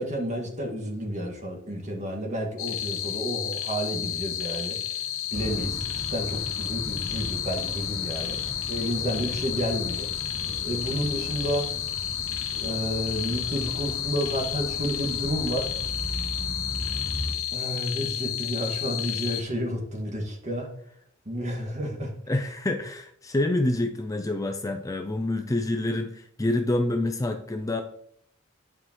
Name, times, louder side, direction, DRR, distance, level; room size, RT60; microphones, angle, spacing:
voice 1, 0.0-4.8 5.3-8.4 8.7-10.1 10.6-11.7 12.5-15.7 15.9-16.0 17.5-20.7 21.3-22.1, equal, 35° right, 1 dB, 1.8 m, -30 dB
sound 1, 2.6-19.4, left 11 dB, 75° left, 0.8 m, -32 dB
sound 2, 5.3-17.3, equal, 70° right, 3.1 m, -37 dB
voice 2, 22.3-27.8, left 1 dB, 15° left, 5 dB, 0.5 m, -27 dB
9.7 x 4.9 x 3.1 m, 0.69 s
head